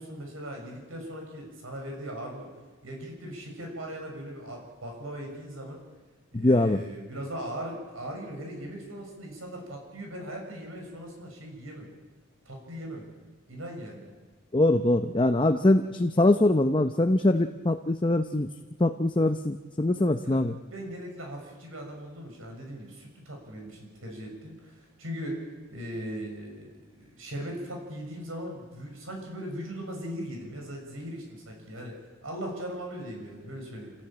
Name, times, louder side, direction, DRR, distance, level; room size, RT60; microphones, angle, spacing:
voice 1, 0.0-2.5 2.8-5.8 6.3-11.9 12.4-13.1 13.5-14.1 20.2-20.4 20.7-25.4 25.7-31.9 32.2-33.9, equal, 80° right, 2 dB, 6.4 m, -39 dB
voice 2, 6.3-6.8 14.5-18.5 18.8-20.6, left 1 dB, 25° left, 6 dB, 0.7 m, -23 dB
28.0 x 15.5 x 8.9 m, 1.3 s
head